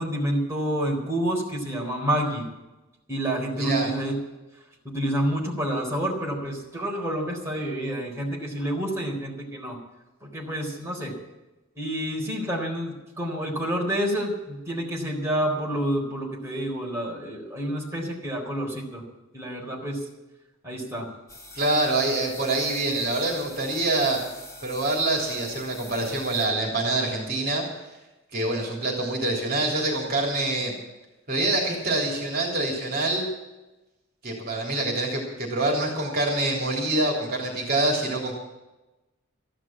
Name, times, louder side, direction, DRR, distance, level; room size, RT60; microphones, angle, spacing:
voice 1, 0.0-2.5 3.1-4.2 4.8-9.8 10.2-11.2 11.8-19.0 19.3-20.1 20.6-21.1, right 1 dB, 15° right, -2 dB, 4.1 m, -28 dB
voice 2, 3.6-3.9 21.6-24.2 24.6-27.6 28.3-30.7 31.3-33.3 34.2-38.3, right 2 dB, 45° right, -1 dB, 3.4 m, -25 dB
sound 1, 21.3-26.9, left 2 dB, 15° left, 3.3 m, -45 dB
14.5 x 11.0 x 7.4 m, 1.0 s
head